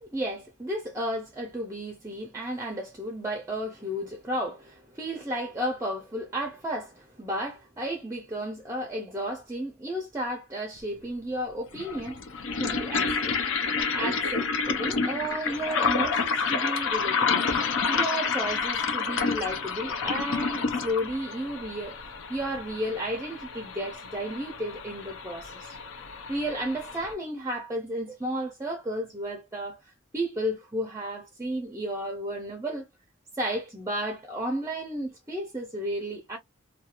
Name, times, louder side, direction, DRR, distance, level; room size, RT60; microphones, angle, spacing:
voice 1, 0.0-12.2 12.6-13.3 13.9-17.5 17.9-22.0 22.3-25.8 26.3-32.9 33.4-36.4, equal, 15° right, 0.5 m, -33 dB
sound 1, 10.8-10.9 11.7-27.1, left 5 dB, 80° left, 0.6 m, -29 dB
2.4 x 2.3 x 2.8 m
head